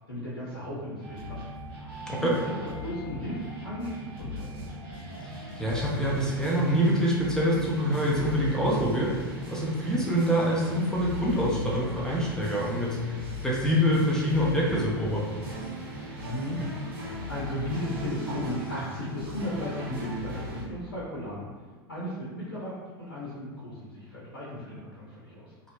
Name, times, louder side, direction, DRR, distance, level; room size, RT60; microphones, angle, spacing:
voice 1, 0.1-1.4 2.1-2.5 2.8-4.7 16.2-21.4 21.9-25.5, equal, 90° left, -8 dB, 0.6 m, -35 dB
sound 1, 1.0-20.7, left 1 dB, 55° right, 0.9 m, -39 dB
voice 2, 5.2-13.0 13.4-15.4, equal, 5° left, -5 dB, 0.5 m, -26 dB
2.8 x 2.0 x 2.7 m, 1.5 s
figure-of-eight pair, 90°, 12 cm